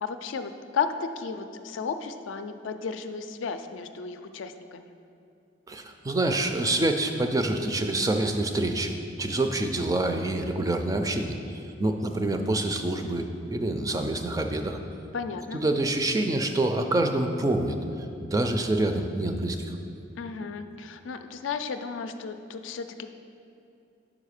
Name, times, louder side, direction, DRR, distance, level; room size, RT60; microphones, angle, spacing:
voice 1, 0.0-4.9 15.1-15.6 20.2-23.1, left 5 dB, 85° left, 8 dB, 0.4 m, -34 dB
voice 2, 5.7-14.8 15.5-17.8 18.2-19.7, right 2 dB, 20° right, 5 dB, 0.3 m, -26 dB
5.4 x 4.9 x 6.5 m, 2.7 s
head